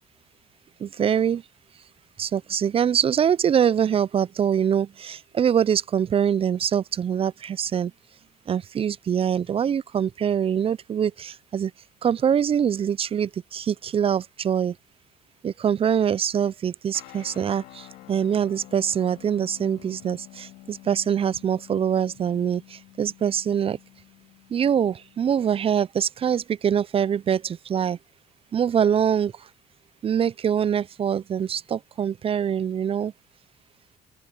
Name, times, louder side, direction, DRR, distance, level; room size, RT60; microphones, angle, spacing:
voice 1, 0.8-1.4 2.2-7.9 8.5-11.7 12.0-14.7 15.4-23.8 24.5-28.0 28.5-29.3 30.0-33.1, right 8 dB, 35° right, 0.4 m, -24 dB
sound 1, 16.9-25.2, left 17 dB, 80° left, 2.5 m, -49 dB
open air
supercardioid pair, 75°, 17 cm